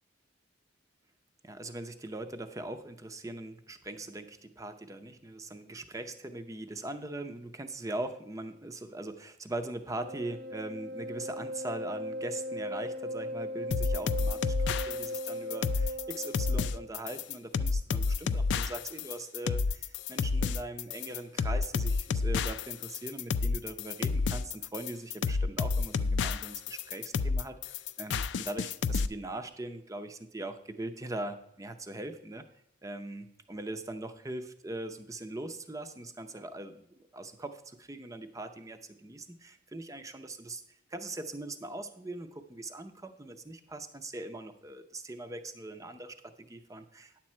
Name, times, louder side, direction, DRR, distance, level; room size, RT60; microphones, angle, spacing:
voice 1, 1.4-32.4 32.8-47.2, right 2 dB, 15° right, 9 dB, 0.6 m, -41 dB
Wind instrument woodwind instrument, 9.9-16.9, equal, 55° right, 1.0 m, -38 dB
sound 1, 13.7-29.1, left 4 dB, 60° left, 0.4 m, -30 dB
10.0 x 7.4 x 4.3 m, 0.74 s
head